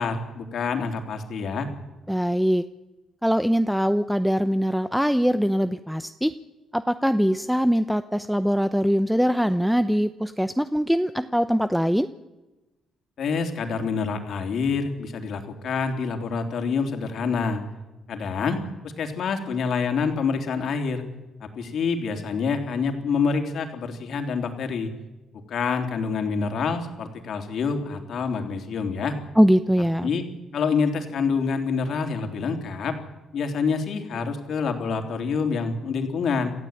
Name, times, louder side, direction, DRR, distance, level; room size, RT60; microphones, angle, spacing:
voice 1, 0.0-1.7 13.2-17.6 18.1-18.6 18.8-21.0 21.4-24.9 25.5-29.2 30.0-30.2 30.5-33.0 33.3-36.5, left 5 dB, 65° left, 5 dB, 3.5 m, -27 dB
voice 2, 2.1-2.6 3.2-6.3 6.7-12.1 29.4-30.1, equal, ahead, 11 dB, 0.8 m, -22 dB
27.5 x 15.0 x 9.2 m, 1.1 s
cardioid pair, 90°, 0 cm